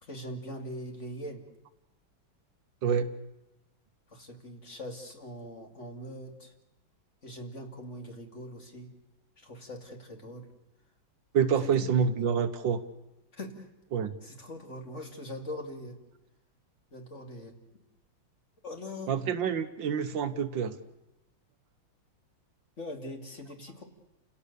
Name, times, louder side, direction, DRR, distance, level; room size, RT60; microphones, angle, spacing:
voice 1, 0.0-1.5 4.1-6.5 7.2-8.9 9.4-10.5 11.6-11.9 13.3-13.7 14.2-16.0 16.9-17.6 18.6-19.1 22.8-23.8, left 1 dB, 35° left, 3 dB, 2.6 m, -42 dB
voice 2, 11.3-12.8 13.9-14.2 19.1-20.7, right 7 dB, 70° right, 11 dB, 1.6 m, -27 dB
29.5 x 17.0 x 6.8 m, 0.99 s
omnidirectional pair, 2.2 m